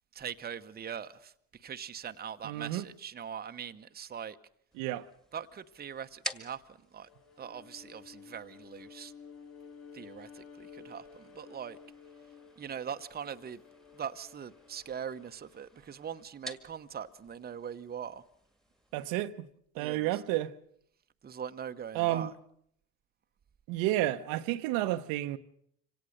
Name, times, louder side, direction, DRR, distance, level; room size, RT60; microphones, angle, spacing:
voice 1, 0.1-4.4 5.3-7.1 7.4-9.1 9.9-11.8 12.6-13.6 13.9-18.2 19.8-20.1 21.2-22.3, right 8 dB, 25° right, 0.9 m, -41 dB
voice 2, 2.4-2.9 4.7-5.1 18.9-19.5 19.7-20.5 21.9-22.3 23.7-25.4, right 15 dB, 75° right, 1.0 m, -31 dB
sound 1, 4.7-19.1, right 1 dB, ahead, 1.8 m, -50 dB
Bowed string instrument, 7.0-15.4, left 6 dB, 40° left, 3.5 m, -53 dB
25.0 x 17.5 x 6.6 m
supercardioid pair, 85°, 35 cm